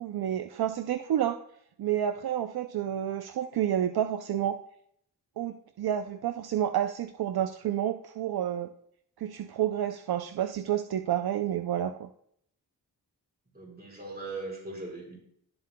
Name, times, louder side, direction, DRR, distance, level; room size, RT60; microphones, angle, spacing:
voice 1, 0.0-1.4 1.8-4.6 5.4-8.7 9.2-12.1, right 10 dB, 70° right, 8 dB, 0.5 m, -29 dB
voice 2, 13.5-15.2, right 3 dB, 25° right, -3 dB, 4.5 m, -39 dB
17.5 x 7.6 x 2.2 m, 0.68 s
wide cardioid pair, 100°, 39 cm